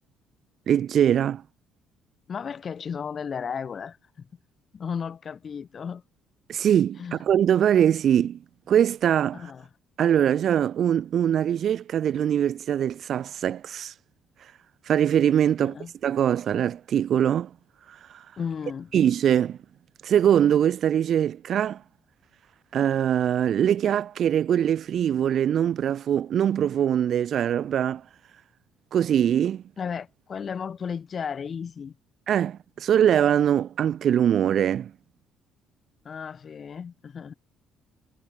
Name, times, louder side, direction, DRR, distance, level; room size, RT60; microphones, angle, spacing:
voice 1, 0.7-1.4 6.5-8.4 8.7-9.4 10.0-13.9 14.9-15.8 16.0-17.5 17.9-18.0 18.9-19.6 20.0-21.8 22.7-28.0 28.9-29.6 32.3-34.9, right 9 dB, 50° right, 0.3 m, -22 dB
voice 2, 2.3-4.3 4.7-6.0 7.0-7.2 9.3-9.7 15.6-15.9 18.4-18.9 29.8-31.9 36.0-37.3, left 6 dB, 40° left, 1.1 m, -34 dB
figure-of-eight pair, 45°, 0 cm